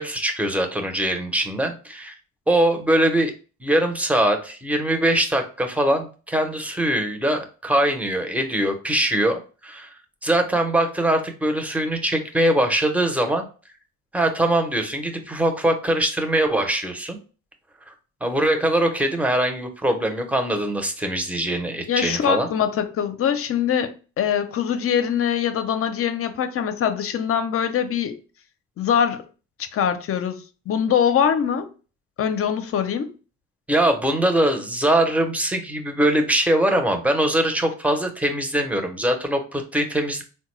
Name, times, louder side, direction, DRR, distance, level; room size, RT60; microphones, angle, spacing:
voice 1, 0.0-2.1 2.5-3.3 3.6-9.9 10.2-13.5 14.1-17.2 17.9-18.0 18.2-22.5 33.7-40.2, right 1 dB, 5° right, 0.6 m, -22 dB
voice 2, 21.9-28.2 28.8-29.2 29.6-31.7 32.2-33.1, left 8 dB, 50° left, 0.5 m, -23 dB
3.7 x 2.2 x 3.0 m
cardioid pair, 90°, 30 cm